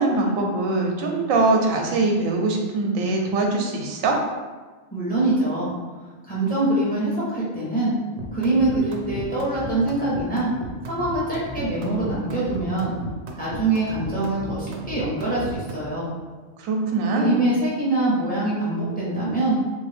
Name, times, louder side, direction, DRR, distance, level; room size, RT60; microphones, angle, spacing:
voice 1, 0.0-4.2 16.6-17.4, right 3 dB, 90° right, 2 dB, 1.0 m, -22 dB
voice 2, 4.9-5.7 6.3-7.9 8.3-10.5 10.9-12.9 13.4-16.1 17.1-19.6, right 2 dB, 10° left, -7 dB, 0.8 m, -24 dB
sound 1, 8.2-15.9, right 1 dB, 65° right, 0.8 m, -35 dB
3.3 x 2.6 x 3.3 m, 1.3 s
omnidirectional pair, 1.4 m